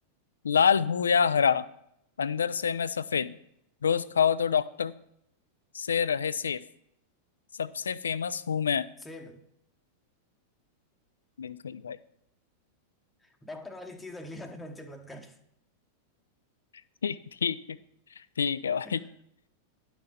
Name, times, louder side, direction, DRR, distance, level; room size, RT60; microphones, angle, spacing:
voice 1, 0.4-1.6 2.2-3.3 3.8-4.9 5.7-6.6 7.6-8.9 11.4-12.0 17.0-17.8 18.4-19.0, left 7 dB, 70° left, 0.3 m, -26 dB
voice 2, 9.0-9.4 13.2-15.4 18.8-19.1, left 1 dB, 10° left, 0.9 m, -43 dB
10.5 x 5.9 x 4.0 m
figure-of-eight pair, 90°, 0 cm